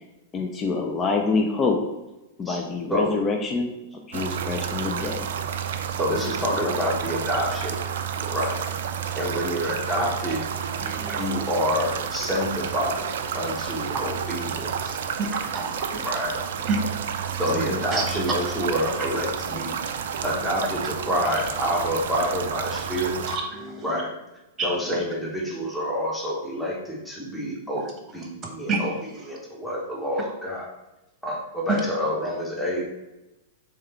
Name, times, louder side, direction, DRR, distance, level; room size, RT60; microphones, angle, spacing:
voice 1, 0.3-1.8 2.4-3.7 4.1-5.3 17.5-17.8, left 4 dB, 25° left, 2 dB, 0.5 m, -26 dB
voice 2, 2.9-3.2 6.0-7.8 8.2-8.7 9.1-10.4 11.1-15.0 16.0-16.4 17.3-19.8 20.2-23.2 23.8-24.2 24.6-30.7 31.2-32.9, equal, ahead, -4 dB, 1.1 m, -28 dB
sound 1, 4.1-23.4, right 7 dB, 60° right, 0.3 m, -30 dB
voice 3, 10.8-11.2 15.5-16.0 16.7-16.8 17.9-18.0 23.3-23.8 24.6-24.7 28.7-28.8, right 4 dB, 25° right, 2 dB, 1.0 m, -28 dB
3.5 x 3.3 x 4.3 m, 0.99 s
figure-of-eight pair, 100°, 0 cm